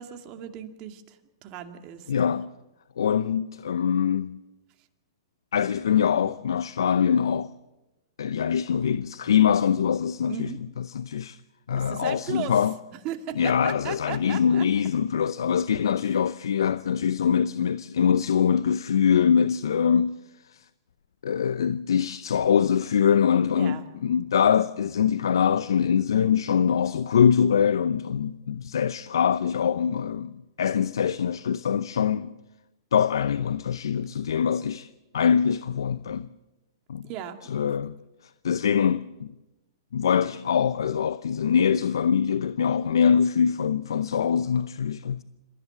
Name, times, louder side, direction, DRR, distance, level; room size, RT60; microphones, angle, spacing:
voice 1, 0.0-2.1 10.3-10.6 11.8-12.6 13.0-14.7 23.5-23.8 37.0-37.7, right 10 dB, 40° right, 2.3 m, -37 dB
voice 2, 2.1-2.5 3.0-4.4 5.5-7.5 8.2-10.5 10.9-11.4 11.7-12.7 13.4-20.2 20.5-20.6 21.2-32.3 32.9-34.9 35.1-36.3 36.9-37.1 37.5-37.9 38.4-39.3 39.9-45.2, left 7 dB, 75° left, 0.6 m, -23 dB
27.0 x 14.5 x 7.9 m
hypercardioid pair, 120°, 2 cm